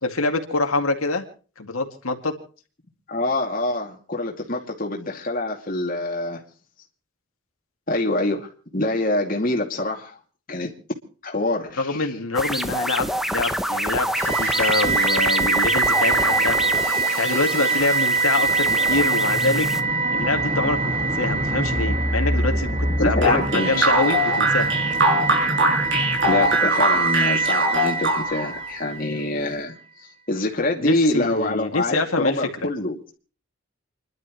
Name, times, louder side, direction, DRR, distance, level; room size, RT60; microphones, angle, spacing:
voice 1, 0.0-1.3 1.6-2.3 11.8-16.6 17.2-19.7 20.1-24.7 30.8-32.3 32.6-32.7, left 3 dB, 90° left, 3 dB, 2.4 m, -25 dB
voice 2, 3.1-6.4 7.9-10.2 10.5-10.7 11.2-12.1 23.0-23.9 26.3-33.0, left 2 dB, 40° left, 1 dB, 2.5 m, -25 dB
sound 1, 12.3-19.8, equal, ahead, 0.8 m, -27 dB
sound 2, 14.1-29.3, right 3 dB, 25° right, 1.8 m, -23 dB
sound 3, 23.2-28.5, right 1 dB, 55° right, 6.4 m, -21 dB
29.5 x 12.0 x 3.2 m, 0.39 s
head